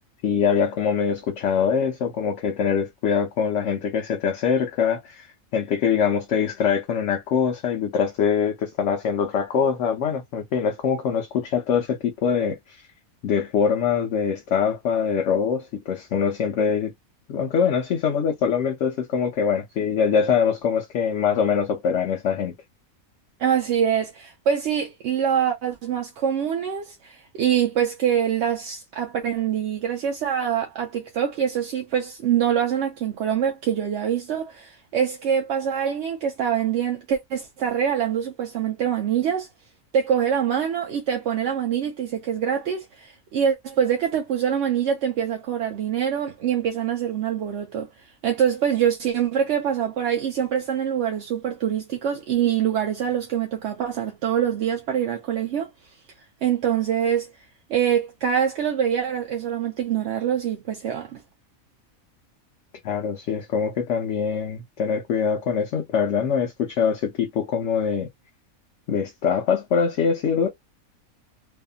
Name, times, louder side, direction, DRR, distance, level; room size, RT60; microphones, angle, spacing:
voice 1, 0.2-12.8 13.2-16.9 17.3-22.6 62.8-68.1 68.9-70.5, left 7 dB, 65° left, 0.8 m, -23 dB
voice 2, 23.4-39.5 39.9-47.9 48.2-55.7 56.4-57.3 57.7-61.2, right 8 dB, 60° right, 0.8 m, -24 dB
2.8 x 2.5 x 2.2 m
omnidirectional pair, 1.5 m